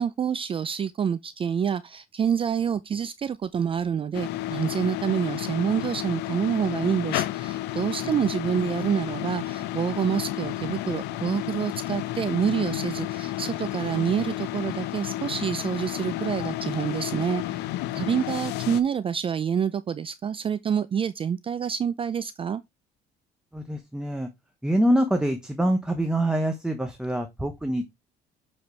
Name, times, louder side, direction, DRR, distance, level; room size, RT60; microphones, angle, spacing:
voice 1, 0.0-17.6 17.9-22.6, right 7 dB, 30° right, 0.4 m, -27 dB
sound 1, 4.1-18.8, left 15 dB, 90° left, 0.6 m, -31 dB
voice 2, 23.5-24.3 24.6-27.8, right 1 dB, 5° right, 1.0 m, -25 dB
7.9 x 4.3 x 3.4 m
cardioid pair, 110°, 17 cm